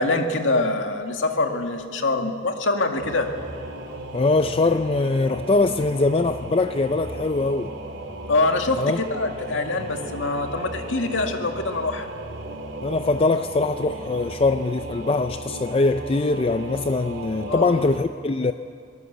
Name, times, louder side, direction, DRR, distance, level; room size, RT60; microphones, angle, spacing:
voice 1, 0.0-3.3 8.3-12.1 17.5-17.7, left 2 dB, 85° left, 2.0 m, -24 dB
Singing / Musical instrument, 3.0-18.0, right 2 dB, 85° right, 2.7 m, -36 dB
voice 2, 4.1-7.7 8.8-9.0 12.8-18.5, left 3 dB, 30° left, 0.4 m, -22 dB
23.5 x 19.0 x 7.9 m
head